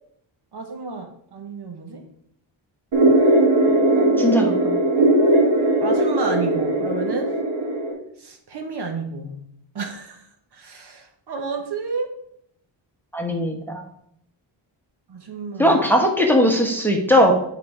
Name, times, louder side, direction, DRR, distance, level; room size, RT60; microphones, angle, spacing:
voice 1, 0.5-2.1 3.7-4.4 5.8-7.3 8.2-9.4 9.7-10.2 10.5-12.1 15.1-15.8, right 4 dB, 55° right, 4 dB, 1.3 m, -31 dB
sound 1, 2.9-7.9, right 1 dB, 70° right, 2.6 m, -19 dB
voice 2, 4.2-4.8 13.1-13.9 15.6-17.3, equal, 5° left, 1 dB, 1.1 m, -19 dB
9.5 x 4.1 x 4.9 m, 0.71 s
wide cardioid pair, 135°, 47 cm